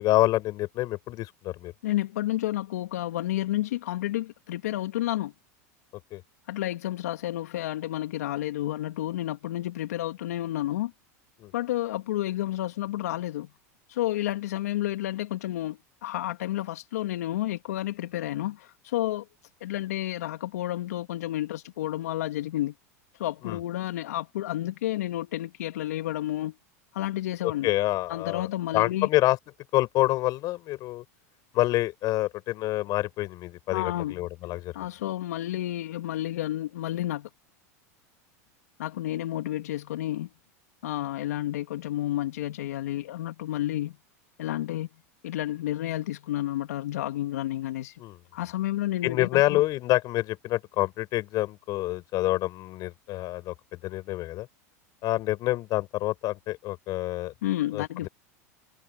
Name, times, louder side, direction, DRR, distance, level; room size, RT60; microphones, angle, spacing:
voice 1, 0.0-1.7 6.1-6.2 11.4-11.5 23.4-23.6 27.4-28.5 28.7-29.4 29.7-31.0 31.5-34.8 48.0-48.2 49.0-54.5 55.0-57.3 57.7-58.1, left 17 dB, 50° left, 7.6 m, -27 dB
voice 2, 1.8-5.3 6.5-10.9 11.5-13.5 13.9-19.3 19.6-22.7 23.2-26.5 26.9-27.7 28.1-29.1 33.7-34.2 34.7-37.3 38.8-40.3 40.8-44.0 44.4-44.9 45.2-47.9 48.3-49.6 57.4-58.1, left 14 dB, 75° left, 2.8 m, -30 dB
hypercardioid pair, 100°, 8 cm